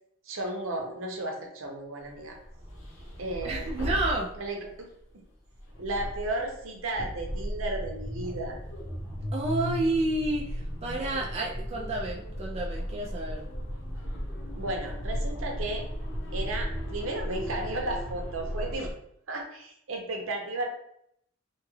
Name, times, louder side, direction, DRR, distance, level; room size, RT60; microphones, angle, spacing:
voice 1, 0.3-2.4 3.2-3.9 4.4-4.9 5.8-8.6 14.5-15.9 16.3-18.9 19.3-20.7, right 2 dB, 75° right, 1 dB, 0.7 m, -34 dB
sound 1, 2.2-4.8 5.5-18.9, equal, 70° left, 0.8 m, -35 dB
voice 2, 3.4-4.3 9.3-13.5, right 2 dB, 30° right, -2 dB, 0.3 m, -30 dB
2.8 x 2.3 x 3.1 m, 0.71 s
head